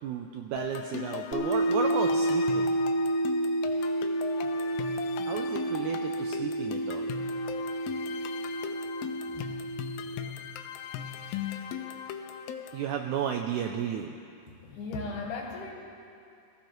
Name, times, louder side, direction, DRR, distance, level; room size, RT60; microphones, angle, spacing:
voice 1, 0.0-2.7 5.3-7.1 12.7-14.1, right 8 dB, 90° right, 4 dB, 1.7 m, -33 dB
sound 1, 0.6-12.9, left 9 dB, 90° left, 2.5 m, -39 dB
sound 2, 1.3-10.1, right 1 dB, 10° left, 3.2 m, -30 dB
voice 2, 14.6-15.7, left 3 dB, 70° left, 0 dB, 2.7 m, -36 dB
19.5 x 15.0 x 3.1 m, 2.5 s
omnidirectional pair, 4.1 m